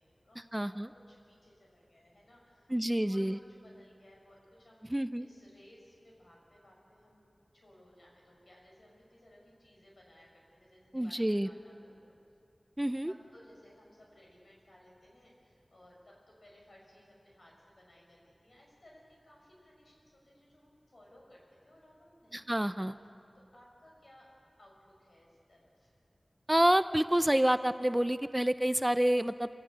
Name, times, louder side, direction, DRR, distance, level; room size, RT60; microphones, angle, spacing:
voice 1, 0.0-3.2 3.6-7.3 7.5-12.1 13.0-22.7 23.3-24.3 24.6-25.9, left 1 dB, 75° left, -2 dB, 6.5 m, -60 dB
voice 2, 0.5-0.9 2.7-3.4 4.9-5.3 10.9-11.5 12.8-13.1 22.3-23.0 26.5-29.5, right 1 dB, 15° right, 12 dB, 0.5 m, -28 dB
25.0 x 17.0 x 8.6 m, 2.7 s
wide cardioid pair, 65°, 0 cm